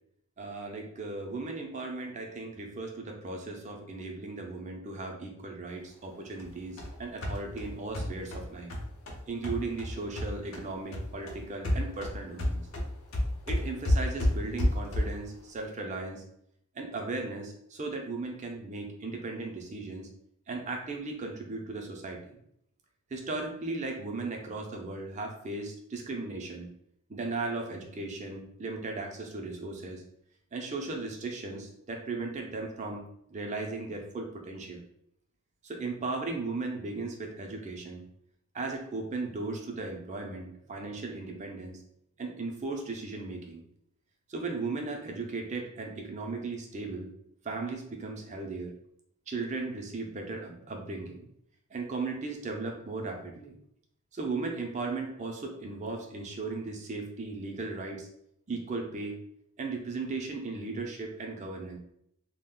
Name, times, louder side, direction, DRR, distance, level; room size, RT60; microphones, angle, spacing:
voice 1, 0.4-8.7 9.3-12.6 13.5-16.2 16.7-20.1 20.5-22.4 23.1-26.7 27.1-30.0 30.5-34.8 35.6-38.0 38.5-41.8 42.2-43.6 44.3-47.1 47.4-48.7 49.3-51.3 51.7-53.5 54.1-58.1 58.5-59.2 59.6-61.8, right 3 dB, 35° right, 2 dB, 0.5 m, -36 dB
sound 1, 6.4-10.7 10.9-15.3, left 1 dB, 75° left, 0.6 m, -31 dB
2.3 x 2.1 x 3.6 m, 0.74 s
head